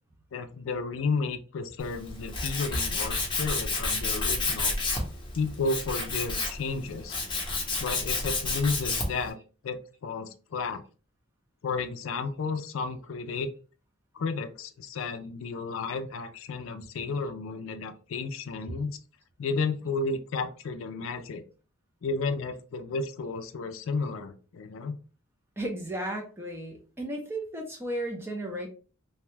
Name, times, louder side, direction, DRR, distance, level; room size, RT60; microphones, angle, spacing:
voice 1, 0.3-4.8 5.3-7.2 7.8-9.4 9.6-10.8 11.6-13.5 14.1-19.0 19.4-21.4 22.0-25.0, left 4 dB, 75° left, 8 dB, 0.4 m, -32 dB
Tools, 1.8-9.3, left 3 dB, 25° left, 0.8 m, -30 dB
voice 2, 25.6-28.7, right 1 dB, 10° right, 1 dB, 0.6 m, -34 dB
2.9 x 2.2 x 3.2 m, 0.37 s
head